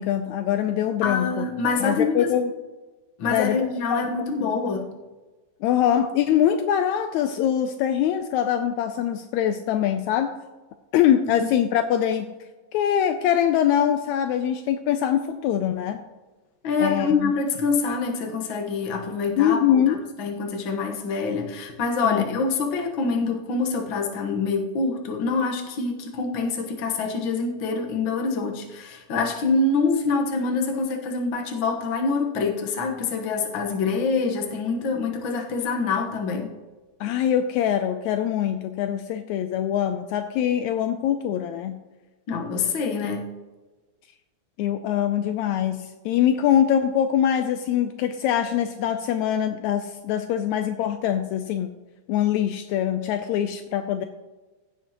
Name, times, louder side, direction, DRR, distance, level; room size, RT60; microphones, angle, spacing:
voice 1, 0.0-1.5 1.8-2.5 3.3-4.1 4.4-4.5 5.6-10.4 10.9-12.3 12.7-16.0 16.8-17.3 19.4-20.0 22.0-22.2 37.0-41.8 44.6-51.7 52.1-54.1, left 10 dB, 90° left, 8 dB, 1.6 m, -23 dB
voice 2, 1.0-2.3 3.2-4.9 16.6-36.5 42.3-43.3, left 4 dB, 55° left, 2 dB, 1.4 m, -25 dB
15.5 x 7.3 x 3.0 m, 1.2 s
omnidirectional pair, 3.8 m